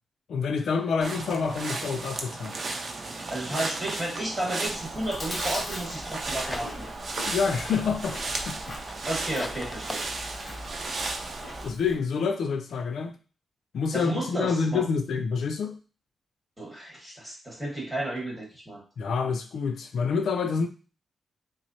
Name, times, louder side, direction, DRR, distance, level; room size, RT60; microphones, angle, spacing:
voice 1, 0.3-2.6 7.3-8.2 8.5-8.8 11.6-13.2 13.7-15.8 19.0-20.7, left 5 dB, 75° left, 0.4 m, -27 dB
sound 1, 1.0-11.7, right 3 dB, 45° right, 0.6 m, -35 dB
voice 2, 3.3-6.9 9.1-10.0 13.9-14.8 16.6-18.8, right 1 dB, 10° right, 1.5 m, -32 dB
Chewing mastication, 4.7-12.0, left 1 dB, 30° left, 1.0 m, -41 dB
sound 2, 6.0-7.1 7.5-10.8, left 1 dB, 10° left, 0.4 m, -42 dB
6.0 x 2.0 x 2.7 m
wide cardioid pair, 145°, 0 cm